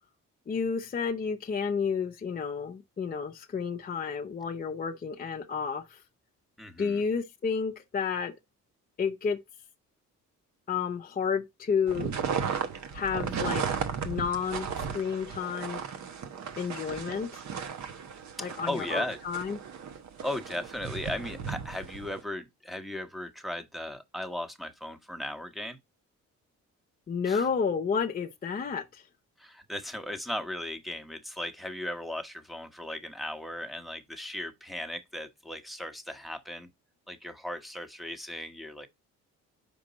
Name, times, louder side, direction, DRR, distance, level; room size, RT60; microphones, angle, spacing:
voice 1, 0.5-6.0 6.8-8.3 9.0-9.4 10.7-12.1 12.9-13.8 14.0-15.8 16.6-17.4 18.4-19.6 27.1-29.0, left 6 dB, 30° left, 0.6 m, -31 dB
voice 2, 6.6-7.0 18.4-19.2 20.2-25.8 27.2-27.5 29.4-36.7 37.1-38.9, left 1 dB, ahead, 1.0 m, -37 dB
sound 1, 11.9-22.2, right 6 dB, 65° right, 1.1 m, -35 dB
5.3 x 5.1 x 3.9 m
cardioid pair, 90°, 30 cm